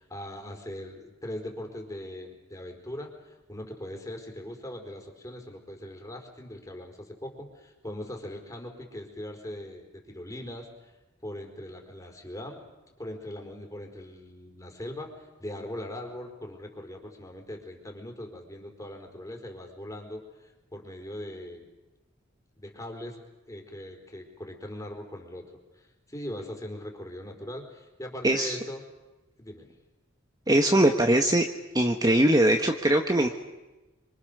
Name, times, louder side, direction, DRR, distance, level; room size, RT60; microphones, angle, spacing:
voice 1, 0.0-10.9 11.2-12.6 13.0-21.7 22.6-23.2 23.5-25.5 25.7-28.8 29.4-29.8, left 1 dB, 15° left, 2 dB, 4.4 m, -40 dB
voice 2, 28.2-28.6 30.5-31.4 31.7-33.3, right 1 dB, 20° right, 4 dB, 1.4 m, -21 dB
26.5 x 25.5 x 6.8 m, 1.1 s
head